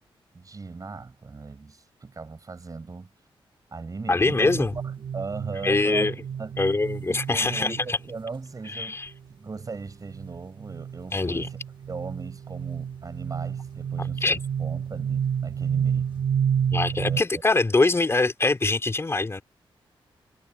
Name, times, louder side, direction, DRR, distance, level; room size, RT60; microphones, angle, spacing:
voice 1, 0.3-3.1 3.7-4.7 5.1-6.6 7.1-9.0 9.3-11.6 11.9-16.1 16.9-17.4, right 4 dB, 40° right, 6.5 m, -38 dB
voice 2, 4.1-4.7 5.6-6.1 6.6-8.0 8.7-9.1 11.1-11.5 14.2-14.4 16.7-19.4, left 3 dB, 25° left, 3.6 m, -23 dB
sound 1, 4.3-8.1 9.6-17.2, right 8 dB, 55° right, 1.4 m, -30 dB
cardioid pair, 90°, 9 cm